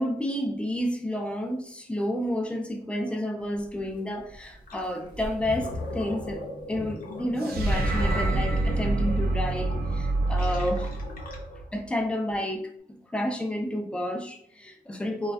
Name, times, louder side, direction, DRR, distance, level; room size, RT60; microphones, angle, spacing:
voice 1, 0.0-6.4 6.7-10.9 11.7-15.3, left 1 dB, 5° left, 3 dB, 0.3 m, -30 dB
sound 1, 3.4-9.9, right 1 dB, 30° right, 0.6 m, -42 dB
Gurgling, 4.7-4.9 5.3-11.7, left 1 dB, 65° left, 0.6 m, -39 dB
sound 2, 7.4-11.8, right 2 dB, 70° right, 0.5 m, -26 dB
2.5 x 2.2 x 2.2 m, 0.65 s
wide cardioid pair, 110°, 16 cm